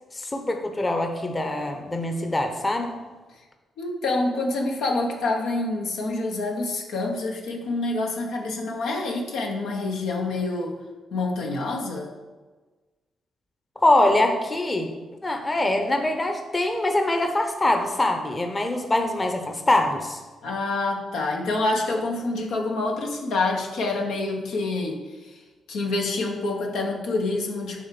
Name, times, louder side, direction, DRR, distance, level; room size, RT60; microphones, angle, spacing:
voice 1, 0.1-2.9 13.8-14.9 15.2-20.2, left 1 dB, 25° left, 5 dB, 0.9 m, -23 dB
voice 2, 3.8-10.8 11.1-12.1 20.4-25.0 25.3-25.4 25.7-27.8, left 2 dB, 80° left, 1 dB, 1.1 m, -27 dB
6.3 x 3.5 x 5.9 m, 1.3 s
supercardioid pair, 55°, 0 cm